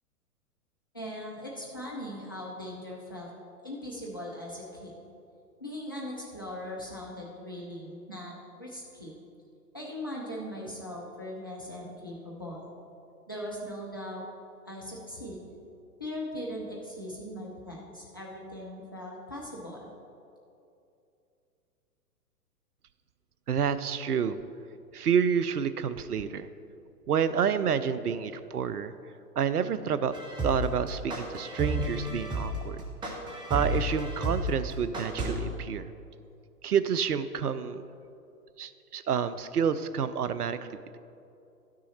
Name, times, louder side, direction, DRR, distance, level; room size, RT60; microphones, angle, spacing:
voice 1, 0.9-3.3 3.6-4.9 5.6-9.1 9.7-12.7 13.3-14.3 14.6-15.5 16.0-19.9, left 1 dB, 15° left, -4 dB, 0.4 m, -39 dB
voice 2, 23.5-24.4 24.9-26.5 27.1-28.9 29.4-30.1 30.4-32.8 33.5-35.9 36.6-37.8 38.6-40.7, right 7 dB, 75° right, 13 dB, 0.6 m, -29 dB
sound 1, 30.1-35.3, right 1 dB, 10° right, 0.9 m, -31 dB
12.0 x 6.3 x 4.3 m, 2.6 s
figure-of-eight pair, 115°, 47 cm